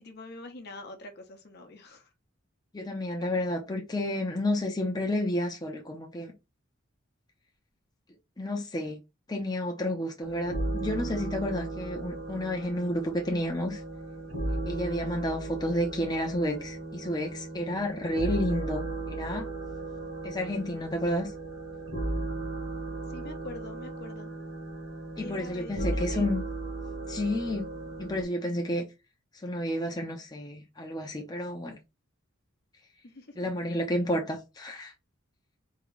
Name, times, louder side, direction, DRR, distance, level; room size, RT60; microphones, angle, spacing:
voice 1, 0.0-2.1 23.1-24.3 25.2-26.3 33.0-33.5, left 2 dB, 55° left, 0.9 m, -44 dB
voice 2, 2.7-6.3 8.4-9.0 9.3-13.8 14.7-19.5 20.2-21.3 25.2-26.4 27.1-27.7 28.0-28.8 29.4-31.8 33.4-34.9, left 1 dB, 20° left, 0.7 m, -31 dB
sound 1, 10.2-28.2, right 2 dB, 55° right, 1.4 m, -36 dB
3.7 x 2.8 x 3.3 m
head